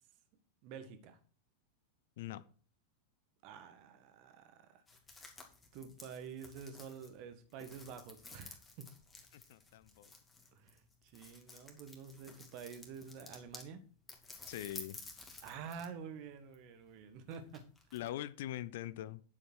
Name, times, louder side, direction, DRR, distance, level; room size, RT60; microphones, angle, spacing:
voice 1, 0.6-1.2 3.4-4.8 5.7-8.9 10.5-13.8 15.4-17.6, right 6 dB, 45° right, 9 dB, 1.5 m, -49 dB
sound 1, 4.9-13.7 14.1-16.0 16.2-18.1, left 3 dB, 10° left, 2.5 m, -54 dB
voice 2, 9.3-10.1 14.5-15.0 17.9-19.2, left 13 dB, 55° left, 16 dB, 0.6 m, -42 dB
9.9 x 7.5 x 4.6 m, 0.41 s
figure-of-eight pair, 90°, 0 cm